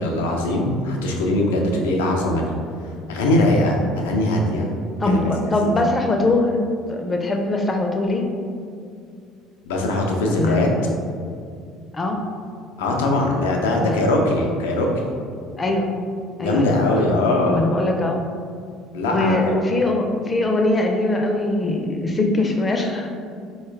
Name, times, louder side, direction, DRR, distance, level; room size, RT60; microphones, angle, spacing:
voice 1, 0.0-2.5 3.1-4.7 5.1-5.7 9.6-10.7 12.8-15.1 16.4-17.6 18.9-19.4, left 1 dB, 75° left, 1 dB, 0.5 m, -21 dB
voice 2, 5.0-8.3 10.4-10.9 11.9-12.2 13.8-14.0 15.6-15.9 16.4-18.2 19.1-23.1, left 2 dB, 25° left, 2 dB, 0.5 m, -22 dB
4.2 x 2.3 x 3.3 m, 2.3 s
hypercardioid pair, 60°, 0 cm